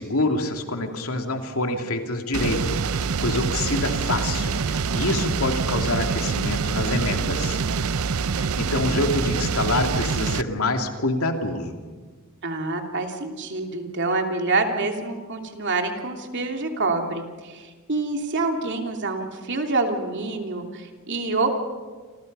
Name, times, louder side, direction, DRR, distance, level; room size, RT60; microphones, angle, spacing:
voice 1, 0.0-7.6 8.3-11.8, left 2 dB, 80° left, 4 dB, 2.7 m, -26 dB
sound 1, 2.3-10.4, right 5 dB, 80° right, 0.7 m, -25 dB
voice 2, 12.4-21.5, right 3 dB, 55° right, 4 dB, 3.0 m, -27 dB
28.5 x 27.5 x 5.5 m, 1.4 s
head